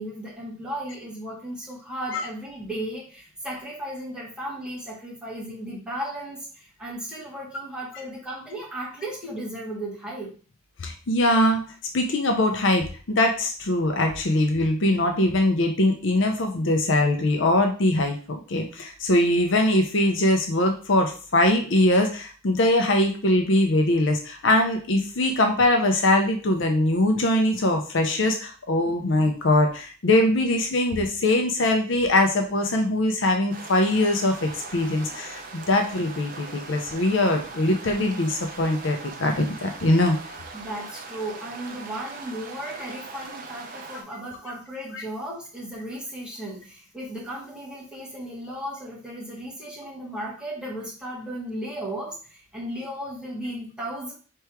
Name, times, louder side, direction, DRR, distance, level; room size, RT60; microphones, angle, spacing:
voice 1, 0.0-10.3 28.8-28.9 40.5-54.1, right 1 dB, 5° right, -6 dB, 1.7 m, -35 dB
voice 2, 10.8-11.6 11.9-40.2, left 1 dB, 60° left, 3 dB, 0.6 m, -22 dB
sound 1, 33.5-44.0, right 4 dB, 45° right, 0.7 m, -40 dB
3.4 x 3.1 x 4.5 m, 0.39 s
head